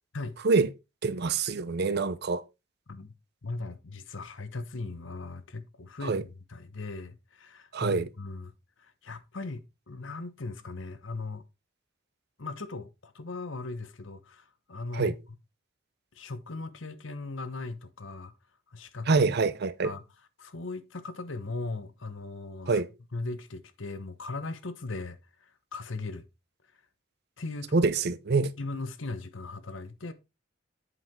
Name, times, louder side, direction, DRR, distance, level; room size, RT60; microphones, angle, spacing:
voice 1, 1.0-2.4 6.0-6.2 7.7-8.1 14.9-15.1 19.1-19.9 22.7-22.9 27.7-28.5, right 4 dB, 55° right, 0.6 m, -25 dB
voice 2, 3.4-8.5 8.8-11.4 12.4-15.1 16.1-18.3 18.7-19.3 19.8-20.0 20.4-22.8 23.1-26.3 27.4-27.8 28.6-30.1, left 3 dB, 70° left, 1.0 m, -38 dB
8.2 x 5.7 x 4.2 m
head